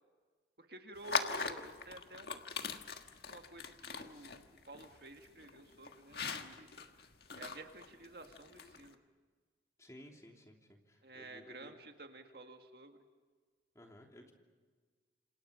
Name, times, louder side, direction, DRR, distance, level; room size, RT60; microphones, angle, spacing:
voice 1, 0.6-2.4 3.3-6.7 7.4-9.0 11.0-13.0, right 2 dB, 60° right, 5 dB, 2.0 m, -52 dB
sound 1, 1.0-8.9, left 5 dB, 60° left, 1.6 m, -41 dB
voice 2, 9.8-11.7 13.7-14.3, equal, 15° left, 1 dB, 3.0 m, -56 dB
28.5 x 27.5 x 5.1 m, 1.4 s
head